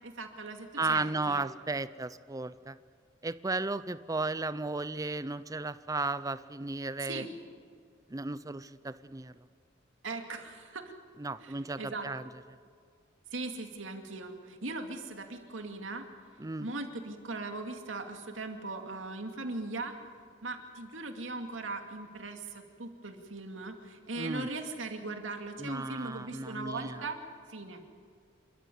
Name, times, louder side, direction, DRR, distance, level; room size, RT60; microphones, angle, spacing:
voice 1, 0.0-1.4 7.1-7.3 10.0-10.9 11.4-12.1 13.3-16.0 16.6-19.9 20.4-27.2 27.5-27.8, right 3 dB, 85° right, 5 dB, 2.4 m, -39 dB
voice 2, 0.8-2.8 3.2-7.2 8.1-9.3 11.2-12.2 16.4-16.7 24.2-24.5 25.6-27.1, right 3 dB, 20° right, 15 dB, 0.5 m, -34 dB
28.0 x 13.5 x 9.3 m, 2.2 s
head